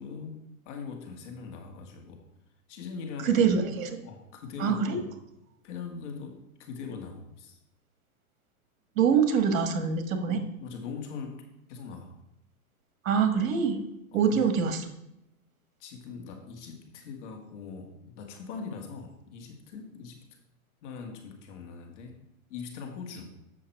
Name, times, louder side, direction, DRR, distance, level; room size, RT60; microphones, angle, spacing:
voice 1, 0.0-2.2 2.7-3.4 3.6-3.7 4.0-5.1 5.6-7.6 10.2-11.4 11.7-12.1 14.1-14.7 15.8-20.2 20.8-22.2 22.5-23.4, left 5 dB, 55° left, 3 dB, 2.0 m, -41 dB
voice 2, 3.2-4.0 4.6-5.0 9.0-10.4 13.0-13.8 14.1-14.8, right 6 dB, 65° right, 7 dB, 1.5 m, -24 dB
7.9 x 6.3 x 4.6 m, 0.84 s
hypercardioid pair, 135°, 44 cm